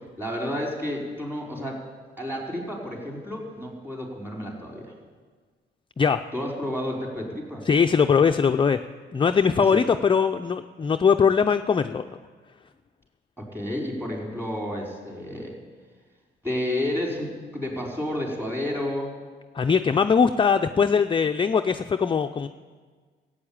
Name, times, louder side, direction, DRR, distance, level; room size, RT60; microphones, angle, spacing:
voice 1, 0.2-1.8 2.2-4.9 6.3-7.7 9.6-9.8 13.4-15.6 16.4-19.1, left 1 dB, 10° right, -1 dB, 4.5 m, -31 dB
voice 2, 7.7-8.8 9.1-12.2 19.5-22.5, left 6 dB, 25° left, 6 dB, 0.5 m, -21 dB
14.5 x 8.7 x 8.8 m, 1.5 s
cardioid pair, 90°, 20 cm